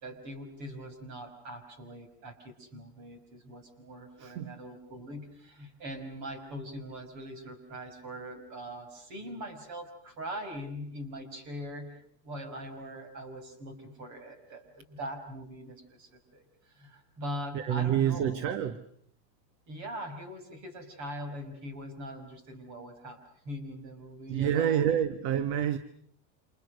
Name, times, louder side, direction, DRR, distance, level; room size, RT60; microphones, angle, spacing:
voice 1, 0.0-12.0 12.2-18.6 19.7-24.8, equal, 35° right, 8 dB, 5.5 m, -42 dB
voice 2, 4.2-4.6 17.5-18.8 24.3-25.8, right 9 dB, 55° right, 13 dB, 1.5 m, -28 dB
29.5 x 27.5 x 6.5 m, 0.62 s
supercardioid pair, 165°, 47 cm